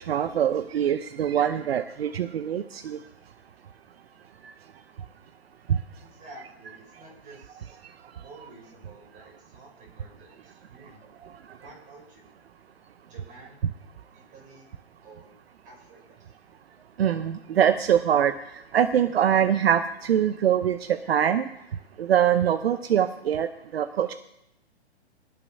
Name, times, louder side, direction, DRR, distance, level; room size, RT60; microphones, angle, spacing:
voice 1, 0.0-3.0 17.0-18.3 18.7-21.5 22.0-24.1, right 9 dB, 65° right, 11 dB, 0.8 m, -23 dB
voice 2, 6.0-7.8 8.1-11.1 11.6-12.3 13.1-13.6 14.1-14.7 15.0-15.4 15.6-16.3, right 2 dB, 25° right, 0 dB, 5.2 m, -50 dB
18.5 x 6.9 x 5.4 m, 0.85 s
hypercardioid pair, 130°, 33 cm